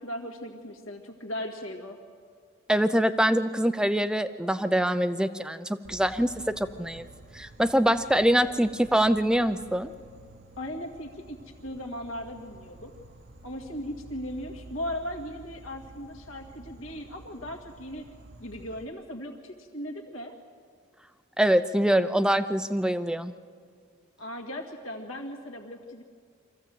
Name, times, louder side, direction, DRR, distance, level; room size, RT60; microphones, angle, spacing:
voice 1, 0.0-2.0 10.6-11.4 11.6-12.9 13.4-18.0 18.4-20.3 24.2-26.0, left 1 dB, 75° left, 1 dB, 1.9 m, -37 dB
voice 2, 2.7-7.1 7.3-9.9 21.4-23.3, equal, 5° right, 12 dB, 0.5 m, -24 dB
Insect, 5.8-18.8, right 2 dB, 50° right, 1.1 m, -50 dB
24.5 x 15.0 x 7.7 m, 2.1 s
head